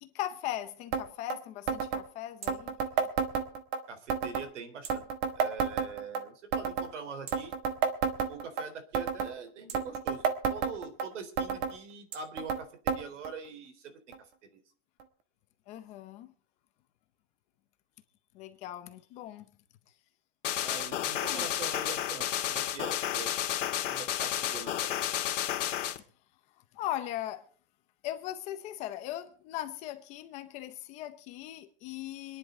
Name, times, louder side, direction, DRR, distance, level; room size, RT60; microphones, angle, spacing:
voice 1, 0.0-2.8 15.7-16.3 18.3-19.4 21.2-21.5 26.7-27.4 28.0-32.4, left 13 dB, 20° left, 0.7 m, -39 dB
sound 1, 0.9-1.0 1.3-1.4 1.7-2.0 2.4-3.8 4.1-4.5 4.8-6.2 6.5-6.9 7.3-8.6 8.9-9.3 9.7-11.1 11.4-11.7 12.1-12.6 12.9-13.0 13.2-13.3 14.1-14.2 15.0-15.1, right 6 dB, 25° right, 1.3 m, -30 dB
voice 2, 3.9-5.0 5.4-7.5 8.3-13.9 14.2-14.3 14.5-14.6 20.6-23.4 23.7-25.0, right 5 dB, 75° right, 3.7 m, -43 dB
sound 2, 20.4-26.0, left 11 dB, 90° left, 2.2 m, -31 dB
26.5 x 10.5 x 3.8 m
supercardioid pair, 175°, 36 cm